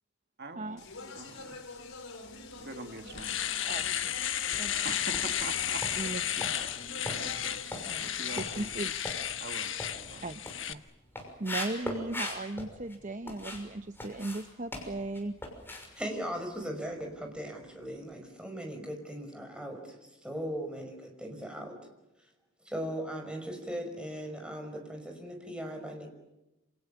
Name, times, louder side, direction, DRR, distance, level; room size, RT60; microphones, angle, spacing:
voice 1, 0.4-0.8 1.1-1.6 2.5-4.0 4.8-6.2 6.6-6.7 7.1-8.7 9.4-10.3, right 2 dB, 55° right, 6 dB, 2.1 m, -45 dB
Speech, 0.8-9.0, left 3 dB, 85° left, 5.7 m, -47 dB
Domestic sounds home sounds, 2.5-2.6 3.0-10.7, left 10 dB, 65° left, 1.4 m, -33 dB
sound 1, 3.1-3.7 4.2-13.7 13.9-17.1 17.4-17.6 18.0-18.1, left 1 dB, 10° left, 6.1 m, -41 dB
voice 2, 3.7-4.2 4.6-4.8 6.0-6.5 7.9-8.9 10.2-10.4 10.7-10.8 11.4-15.3, right 2 dB, 35° right, 10 dB, 0.8 m, -37 dB
voice 3, 16.0-20.0 20.2-21.8 22.7-26.1, equal, 5° right, 3 dB, 5.6 m, -38 dB
28.0 x 27.5 x 7.1 m, 0.98 s
head